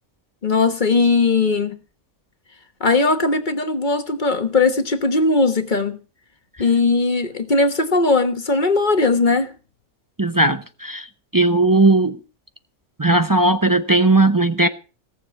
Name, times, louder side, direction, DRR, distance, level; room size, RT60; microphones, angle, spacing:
voice 1, 0.4-1.8 2.8-6.0 6.6-9.5, left 3 dB, 35° left, 1.4 m, -19 dB
voice 2, 10.2-11.1 11.3-12.2 13.0-14.7, right 2 dB, 25° right, 0.5 m, -17 dB
17.5 x 7.3 x 6.9 m
omnidirectional pair, 1.4 m